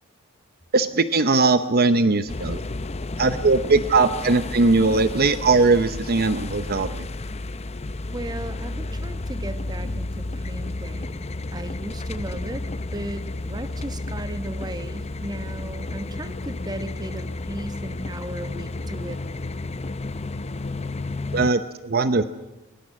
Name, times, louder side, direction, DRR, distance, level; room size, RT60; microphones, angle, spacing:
voice 1, 0.7-2.6 3.2-7.1 21.3-22.2, right 3 dB, 45° right, 12 dB, 0.8 m, -20 dB
sound 1, 2.3-21.5, left 2 dB, 30° left, 0.7 m, -32 dB
voice 2, 8.1-12.6 12.9-19.2, right 1 dB, 20° right, 11 dB, 1.1 m, -36 dB
22.0 x 20.5 x 7.5 m, 1.1 s
head